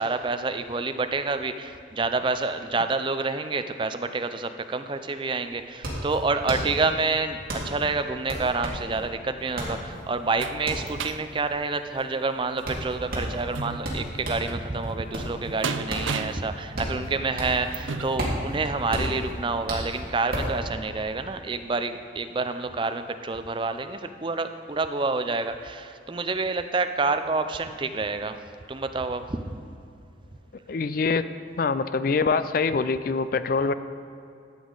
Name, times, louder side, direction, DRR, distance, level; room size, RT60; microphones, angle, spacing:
voice 1, 0.0-28.4 28.7-29.4, right 3 dB, 25° right, 9 dB, 0.4 m, -28 dB
sound 1, 4.9-5.0 5.2-14.5 14.9-17.7 18.0-20.6, right 1 dB, 50° right, 2.3 m, -32 dB
sound 2, 9.4-19.2 19.8-19.9 20.3-20.4, right 4 dB, 85° right, 0.5 m, -37 dB
voice 2, 30.7-31.2 31.6-33.7, left 4 dB, 50° left, 13 dB, 0.3 m, -24 dB
13.5 x 8.2 x 3.9 m, 2.6 s
head